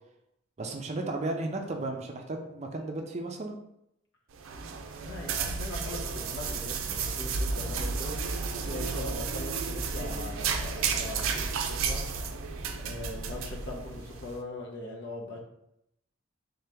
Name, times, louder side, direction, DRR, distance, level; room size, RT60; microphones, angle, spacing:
voice 1, 0.6-3.5, right 2 dB, 35° right, 3 dB, 0.5 m, -34 dB
sound 1, 4.3-14.3, right 5 dB, 90° right, 0.4 m, -32 dB
voice 2, 5.0-12.1 12.8-15.4, left 2 dB, 65° left, -1 dB, 0.9 m, -41 dB
3.7 x 2.9 x 3.4 m, 0.79 s
head